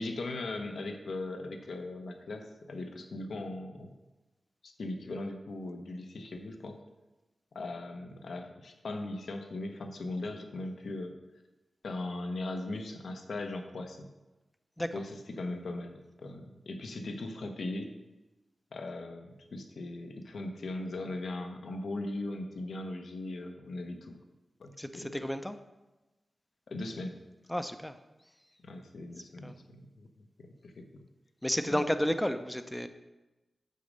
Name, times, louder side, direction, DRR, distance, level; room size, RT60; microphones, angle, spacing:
voice 1, 0.0-3.9 4.6-6.8 7.5-11.2 11.8-14.1 14.9-15.1 15.4-17.9 18.7-24.2 24.6-25.1 26.7-27.2 28.6-30.1 30.4-31.0 31.7-31.9, left 2 dB, 75° left, 5 dB, 0.9 m, -39 dB
voice 2, 14.8-15.1 24.8-25.6 27.5-28.0 29.4-29.5 31.4-32.9, equal, 5° left, 10 dB, 0.4 m, -32 dB
6.6 x 5.1 x 6.5 m, 1.1 s
wide cardioid pair, 135°, 0 cm